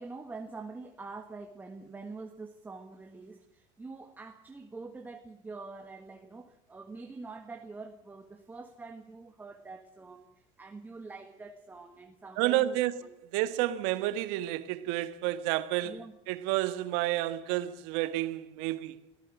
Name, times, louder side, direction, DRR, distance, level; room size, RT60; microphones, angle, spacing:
voice 1, 0.0-13.2 15.8-16.1, right 3 dB, 10° right, 1.5 m, -45 dB
voice 2, 12.4-12.9 13.3-16.0 16.3-19.0, right 15 dB, 65° right, 1.7 m, -30 dB
25.0 x 17.0 x 6.2 m
cardioid pair, 150°, 16 cm